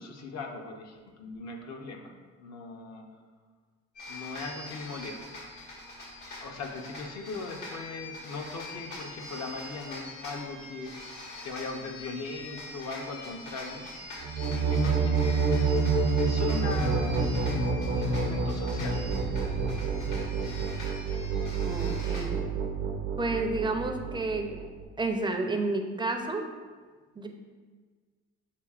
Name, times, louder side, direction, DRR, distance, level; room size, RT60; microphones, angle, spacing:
voice 1, 0.0-3.1 4.1-5.4 6.4-13.9 14.6-17.3 17.9-19.0, left 3 dB, 60° left, 2 dB, 0.7 m, -39 dB
sound 1, 3.9-22.2, left 1 dB, 80° left, 1.5 m, -43 dB
sound 2, 14.2-24.8, right 4 dB, 80° right, 0.7 m, -28 dB
voice 2, 21.7-22.4 23.2-24.6 25.0-26.4 27.2-27.3, right 2 dB, 15° right, 3 dB, 0.4 m, -30 dB
6.7 x 2.7 x 2.4 m, 1.4 s
supercardioid pair, 85°, 30 cm